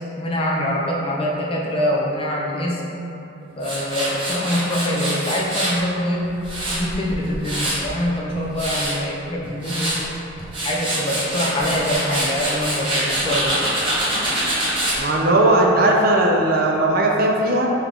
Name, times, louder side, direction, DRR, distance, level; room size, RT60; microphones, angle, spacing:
voice 1, 0.2-2.8 3.6-6.3 6.7-10.0 10.6-13.5, equal, 25° left, -3 dB, 0.4 m, -24 dB
Tools, 3.6-5.8 6.2-7.9 8.3-8.9 9.4-10.0 10.4-15.0, right 1 dB, 25° right, 0.8 m, -25 dB
voice 2, 15.0-17.7, right 1 dB, 45° right, -1 dB, 0.4 m, -17 dB
5.5 x 2.4 x 3.5 m, 2.9 s
head